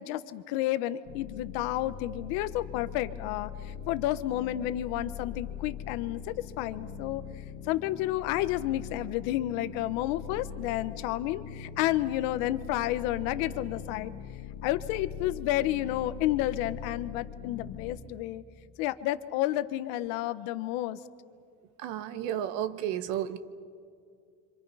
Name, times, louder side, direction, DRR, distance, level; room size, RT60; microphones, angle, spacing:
voice 1, 0.0-7.2 7.7-14.1 14.6-18.4 18.8-21.0, left 14 dB, 85° left, 13 dB, 1.1 m, -31 dB
sound 1, 1.0-18.0, left 8 dB, 45° left, 1.8 m, -42 dB
voice 2, 21.8-23.4, right 10 dB, 70° right, 12 dB, 1.2 m, -32 dB
28.0 x 26.0 x 5.6 m, 2.3 s
cardioid pair, 170°, 31 cm